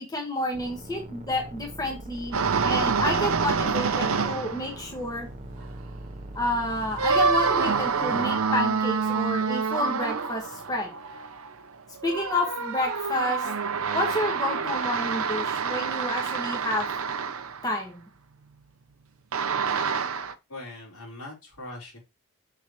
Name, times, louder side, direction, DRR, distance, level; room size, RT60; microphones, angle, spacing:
voice 1, 0.0-2.4 2.6-5.3 6.3-10.9 12.0-13.5 13.9-16.9 17.6-18.0, left 1 dB, 15° left, 1 dB, 1.5 m, -29 dB
sound 1, 0.5-9.0, right 1 dB, 30° right, 0.9 m, -41 dB
sound 2, 2.3-4.8 5.6-5.7 7.0-11.6 12.0-17.7 19.3-20.3, right 5 dB, 70° right, 0.7 m, -27 dB
voice 2, 20.5-22.0, left 2 dB, 80° left, -2 dB, 4.1 m, -41 dB
7.1 x 6.2 x 3.0 m, 0.25 s
head